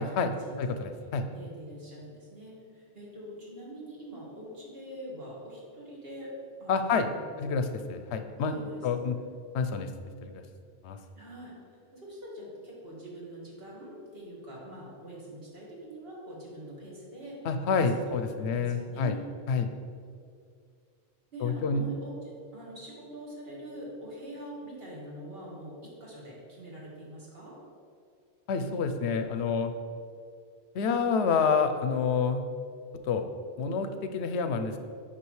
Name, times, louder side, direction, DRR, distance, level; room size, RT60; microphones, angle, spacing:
voice 1, 0.0-0.3 0.6-1.3 6.7-7.1 7.4-8.6 8.8-9.1 9.5-9.9 10.2-10.4 10.8-11.0 17.4-19.2 19.5-19.7 21.4-21.9 28.5-29.7 30.7-32.4 33.0-33.3 33.6-34.9, left 5 dB, 85° left, 8 dB, 0.9 m, -28 dB
voice 2, 1.3-6.3 6.6-7.3 8.5-8.8 11.2-11.5 11.9-17.4 17.7-19.2 21.3-27.6, right 1 dB, 65° right, -5 dB, 1.9 m, -44 dB
8.4 x 5.5 x 3.1 m, 2.3 s
omnidirectional pair, 1.1 m